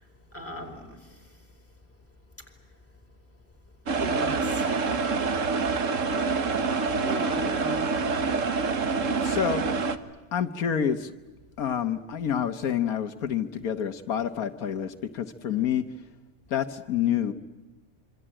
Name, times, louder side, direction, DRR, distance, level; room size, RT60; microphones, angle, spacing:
voice 1, 0.3-1.0 3.9-5.0 7.0-7.8, equal, 10° left, 2 dB, 4.5 m, -38 dB
sound 1, 3.9-10.0, right 4 dB, 60° right, 1.7 m, -26 dB
voice 2, 9.2-9.7 10.3-11.1 11.6-15.8 16.5-17.3, left 9 dB, 85° left, 8 dB, 1.6 m, -28 dB
26.5 x 25.0 x 8.9 m, 1.2 s
omnidirectional pair, 1.5 m